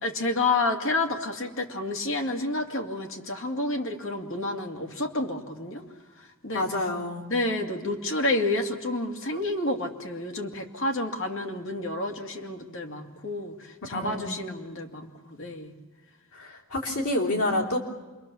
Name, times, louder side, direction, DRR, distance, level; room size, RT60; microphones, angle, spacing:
voice 1, 0.0-5.8 6.4-6.6 7.3-15.8, left 2 dB, 60° left, 3 dB, 2.4 m, -29 dB
voice 2, 6.5-7.3 13.9-14.4 16.3-17.8, left 1 dB, 85° left, -1 dB, 3.6 m, -28 dB
27.5 x 22.5 x 7.1 m, 1.2 s
head